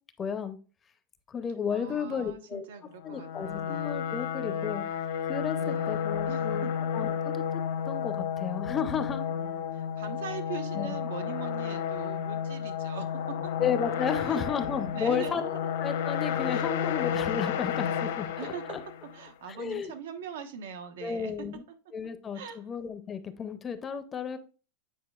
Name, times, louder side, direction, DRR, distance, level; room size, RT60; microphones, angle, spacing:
voice 1, 0.2-0.6 1.3-2.7 3.0-4.8 5.2-6.7 6.9-7.6 7.9-9.2 10.8-10.9 13.6-15.4 15.8-18.3 19.5-19.9 21.0-21.6 21.9-24.4, left 7 dB, 15° left, 10 dB, 0.5 m, -33 dB
voice 2, 1.7-4.0 5.5-6.9 9.3-13.5 14.3-14.4 14.9-15.7 16.5-16.7 18.4-18.8 19.1-21.5 22.3-22.6, right 7 dB, 90° right, 7 dB, 1.1 m, -42 dB
sound 1, 3.0-19.3, left 8 dB, 80° left, 1.0 m, -32 dB
8.7 x 5.0 x 2.4 m, 0.36 s
supercardioid pair, 165°, 0 cm